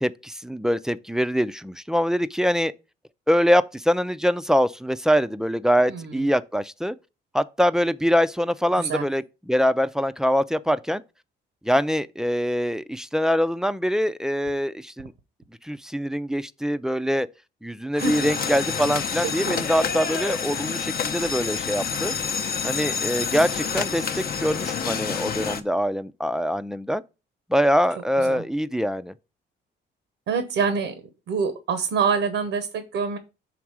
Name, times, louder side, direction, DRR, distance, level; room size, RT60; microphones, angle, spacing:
voice 1, 0.0-2.7 3.3-6.9 7.3-11.0 11.6-15.1 15.6-17.3 17.6-22.1 22.6-27.0 27.5-29.1, equal, 5° right, 0.3 m, -24 dB
voice 2, 5.9-6.3 8.8-9.1 17.9-18.3 19.2-19.6 28.2-28.4 30.3-30.9 31.3-33.2, right 5 dB, 80° right, 0.9 m, -26 dB
sound 1, 18.0-25.6, left 6 dB, 50° left, 0.6 m, -28 dB
6.0 x 3.6 x 4.7 m
cardioid pair, 90°, 20 cm